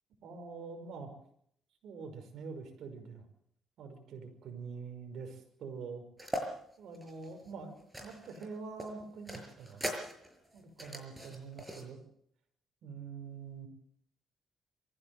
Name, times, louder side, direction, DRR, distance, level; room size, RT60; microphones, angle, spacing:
voice 1, 0.2-1.1 1.8-3.2 3.8-6.0 6.8-9.9 10.5-12.0 12.8-13.7, right 5 dB, 75° right, 6 dB, 5.6 m, -45 dB
sound 1, 6.2-6.5 6.9-8.5 8.8-11.8, equal, 10° right, 5.8 m, -40 dB
23.5 x 15.5 x 7.9 m, 0.69 s
cardioid pair, 90°, 0 cm